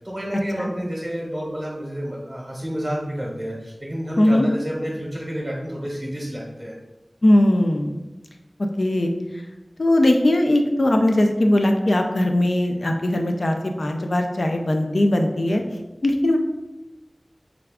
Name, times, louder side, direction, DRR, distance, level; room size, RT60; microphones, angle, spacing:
voice 1, 0.0-6.7, equal, 30° right, -3 dB, 0.8 m, -30 dB
voice 2, 7.2-7.9 8.8-9.1 9.8-15.6 16.0-16.4, left 1 dB, 70° left, 4 dB, 0.4 m, -19 dB
3.5 x 2.3 x 3.5 m, 1.0 s
wide cardioid pair, 40°, 0 cm